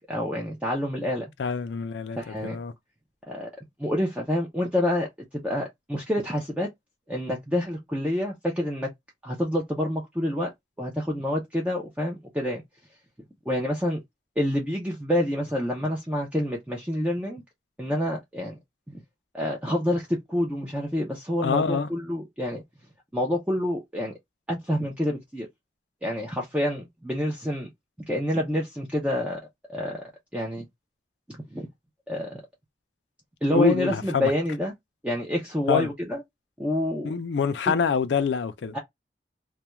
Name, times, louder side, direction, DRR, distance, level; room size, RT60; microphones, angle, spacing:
voice 1, 0.0-1.3 2.2-2.6 3.3-3.5 3.8-6.7 7.1-8.9 9.2-10.5 10.8-12.6 13.5-14.0 14.4-17.4 17.8-18.6 18.9-19.0 19.3-22.6 23.1-24.1 24.5-25.5 26.0-27.7 28.1-29.4 29.7-30.0 30.3-30.6 31.5-31.7 32.1-32.4 33.4-34.7 35.0-36.2 36.6-37.1 37.7-37.8 38.7-38.8, left 1 dB, 10° right, 0.5 m, -27 dB
voice 2, 1.4-2.7 21.4-21.9 33.5-34.3 35.7-35.9 37.0-38.7, left 5 dB, 80° left, 0.4 m, -25 dB
2.3 x 2.2 x 2.9 m
head